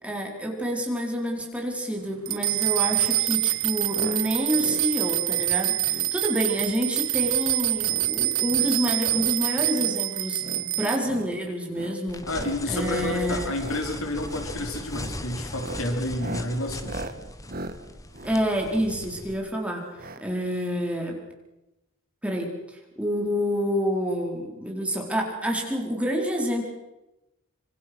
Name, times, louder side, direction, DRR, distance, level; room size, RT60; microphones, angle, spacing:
voice 1, 0.0-12.2 12.7-13.5 18.2-19.9 20.2-21.2 22.2-22.5 23.0-26.7, equal, 5° right, 0 dB, 4.5 m, -28 dB
sound 1, 2.3-11.0, right 14 dB, 65° right, 1.1 m, -26 dB
sound 2, 3.9-4.2 4.5-4.9 5.2-5.5 5.8-6.1 6.5-6.8 7.1-7.4 7.7-8.1 8.4-9.4 9.7-10.0 10.4-10.7 11.0-11.3 11.7-12.0 12.3-12.6 12.9-13.2 13.5-13.9 14.2-14.5 14.9-15.1 15.5-19.2 20.0-20.2 20.5-20.6 20.8-20.9, right 1 dB, 40° right, 1.6 m, -39 dB
sound 3, 12.1-19.3, left 1 dB, 15° left, 1.4 m, -38 dB
voice 2, 12.3-17.0, left 1 dB, 75° left, 3 dB, 4.9 m, -30 dB
26.0 x 26.0 x 6.3 m, 0.97 s
head